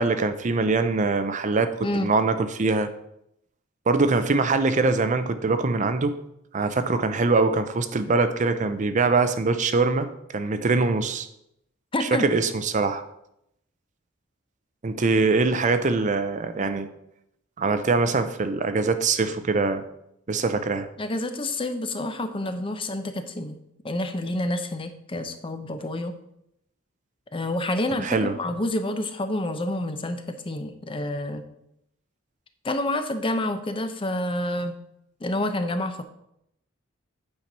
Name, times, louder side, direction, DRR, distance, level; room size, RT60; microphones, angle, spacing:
voice 1, 0.0-1.7 2.0-2.9 3.9-6.2 6.5-11.3 12.0-13.0 14.8-16.9 17.6-19.8 20.3-20.9 28.0-28.3, right 3 dB, 35° right, 10 dB, 0.5 m, -23 dB
voice 2, 11.9-12.3 21.0-23.6 23.8-26.2 27.3-31.4 32.6-34.8 35.2-36.0, left 1 dB, 25° left, 8 dB, 0.7 m, -28 dB
8.8 x 4.4 x 5.4 m, 0.78 s
head